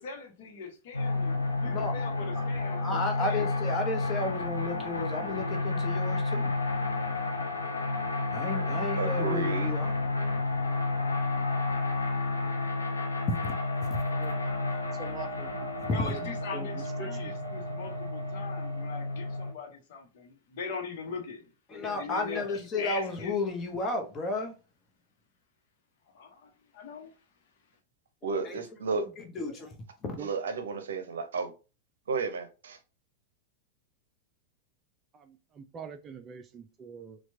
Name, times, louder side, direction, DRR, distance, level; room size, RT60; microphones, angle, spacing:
voice 1, 0.0-3.5 15.9-21.5 22.0-23.4 26.1-27.2, left 5 dB, 55° left, 1.0 m, -41 dB
sound 1, 0.9-19.5, left 2 dB, 80° left, 0.6 m, -31 dB
voice 2, 1.6-2.0 2.3-2.4 2.8-6.5 8.3-9.9 13.4-13.5 15.8-16.1 21.7-24.5 28.2-28.6 29.2-29.7 30.0-30.2, left 2 dB, 25° left, 1.0 m, -33 dB
voice 3, 9.0-9.7 28.2-29.1 30.2-31.5 32.1-32.8, right 5 dB, 65° right, 0.6 m, -32 dB
voice 4, 14.9-15.7 16.0-16.2 16.5-17.5 30.2-30.3 35.1-37.2, right 6 dB, 25° right, 0.4 m, -44 dB
4.3 x 2.3 x 2.7 m
figure-of-eight pair, 90°, 0 cm